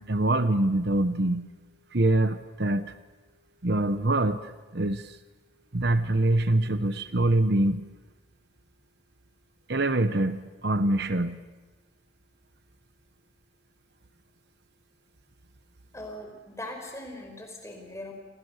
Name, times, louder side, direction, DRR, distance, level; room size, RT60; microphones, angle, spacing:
voice 1, 0.0-1.5 1.9-2.9 3.6-5.2 5.7-7.9 9.7-11.4, right 1 dB, 55° right, 11 dB, 1.0 m, -25 dB
voice 2, 15.9-18.1, left 1 dB, 15° left, 3 dB, 5.0 m, -40 dB
28.0 x 27.0 x 6.6 m, 1.2 s
head